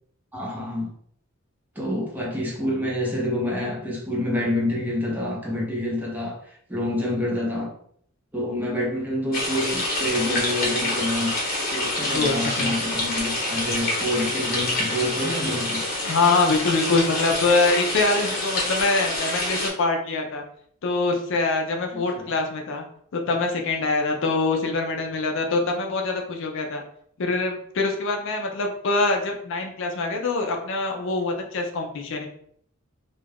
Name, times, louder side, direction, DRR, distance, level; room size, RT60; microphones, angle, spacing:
voice 1, 0.3-0.9 1.8-7.7 8.3-11.3 11.7-15.8 22.1-22.3, left 1 dB, 10° right, -4 dB, 0.8 m, -27 dB
sound 1, 9.3-19.7, left 1 dB, 45° left, 1.0 m, -27 dB
voice 2, 12.1-12.7 16.0-20.4 20.8-22.8 23.1-26.8 27.2-32.3, left 3 dB, 65° left, 3 dB, 0.4 m, -24 dB
2.4 x 2.2 x 3.4 m, 0.64 s
head